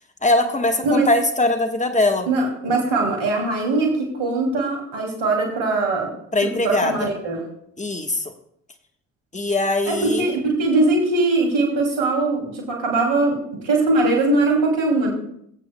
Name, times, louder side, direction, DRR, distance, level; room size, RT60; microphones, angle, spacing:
voice 1, 0.2-2.3 6.3-7.1 7.8-8.3 9.3-10.4, left 2 dB, 20° left, 5 dB, 1.3 m, -21 dB
voice 2, 2.3-6.1 6.4-7.5 9.9-15.1, right 2 dB, 80° right, 1 dB, 2.8 m, -21 dB
23.0 x 8.4 x 2.2 m, 0.71 s
hypercardioid pair, 45°, 36 cm